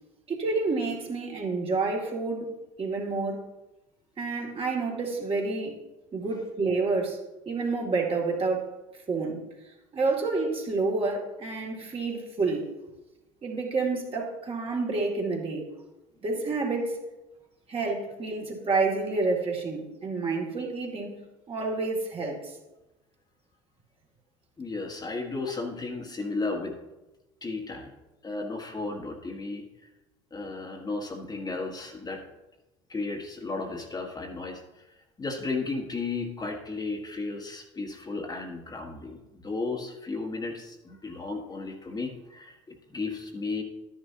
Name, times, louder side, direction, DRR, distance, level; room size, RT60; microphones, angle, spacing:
voice 1, 0.3-2.5 2.8-3.4 4.2-5.8 6.1-7.2 7.5-8.7 9.1-9.4 9.9-12.7 13.4-15.7 16.2-17.0 17.7-21.1 21.5-22.6, right 3 dB, 35° right, -1 dB, 2.4 m, -29 dB
voice 2, 24.6-26.8 27.4-27.9 28.2-29.7 30.3-32.2 32.9-34.8 35.2-43.6, left 3 dB, 25° left, 2 dB, 1.5 m, -34 dB
12.0 x 10.5 x 2.8 m, 1.0 s
hypercardioid pair, 70°, 16 cm